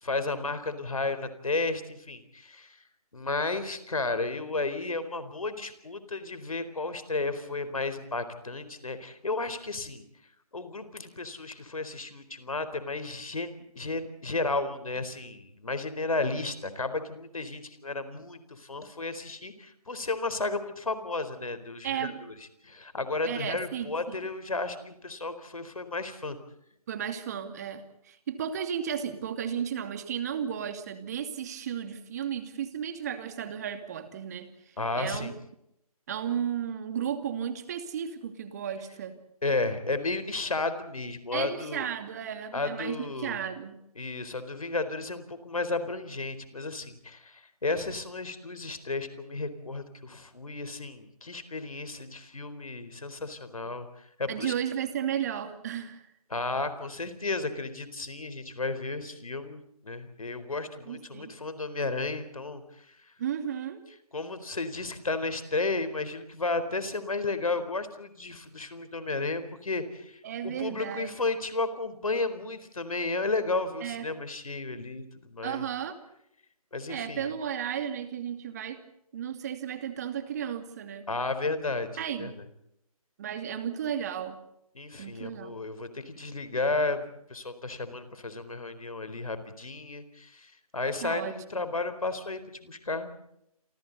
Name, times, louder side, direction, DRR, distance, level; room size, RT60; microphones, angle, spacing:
voice 1, 0.0-2.8 3.1-10.1 10.5-22.3 22.6-26.4 34.8-35.3 39.4-41.9 42.5-43.4 44.0-53.9 54.2-54.5 56.3-63.1 64.1-75.6 76.7-77.3 81.1-81.9 82.2-82.5 84.7-87.0 87.3-93.2, left 3 dB, 65° left, 11 dB, 4.3 m, -33 dB
voice 2, 21.8-22.2 23.2-24.2 26.9-34.5 35.0-35.3 36.1-39.2 41.3-43.8 54.3-56.1 60.9-61.3 63.2-63.8 70.2-71.2 73.8-74.1 75.4-76.0 76.9-78.8 79.1-81.1 82.0-82.3 83.2-84.4 85.0-85.6 91.0-91.3, right 9 dB, 25° right, 9 dB, 2.6 m, -34 dB
28.5 x 28.0 x 4.2 m, 0.77 s
figure-of-eight pair, 150°, 19 cm